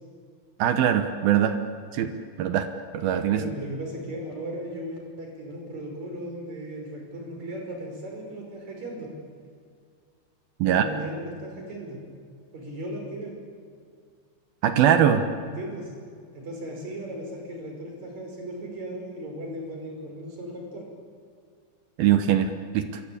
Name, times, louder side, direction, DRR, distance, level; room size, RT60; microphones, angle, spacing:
voice 1, 0.6-1.6 1.9-2.1 2.4-2.7 2.9-3.4 10.6-10.8 14.6-15.2 22.0-23.0, right 10 dB, 75° right, 8 dB, 2.2 m, -21 dB
voice 2, 3.3-9.1 10.6-12.0 12.5-13.3 15.4-15.9 16.3-20.8, right 1 dB, 35° right, 1 dB, 6.3 m, -36 dB
27.5 x 23.5 x 8.7 m, 2.2 s
omnidirectional pair, 5.7 m